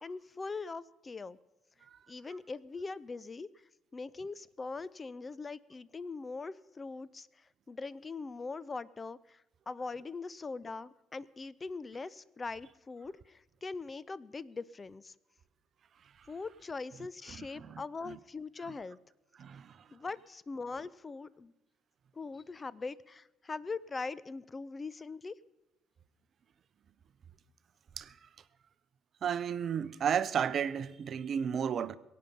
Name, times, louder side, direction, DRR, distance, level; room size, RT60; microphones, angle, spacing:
voice 1, 0.0-1.4 2.1-3.5 3.9-15.1 16.3-19.0 19.9-21.5 22.1-25.3, left 4 dB, 25° left, 0.5 m, -41 dB
voice 2, 19.4-19.8 28.0-28.1 29.2-32.0, right 8 dB, 45° right, 0.6 m, -33 dB
22.5 x 8.5 x 5.7 m
figure-of-eight pair, 50°, 0 cm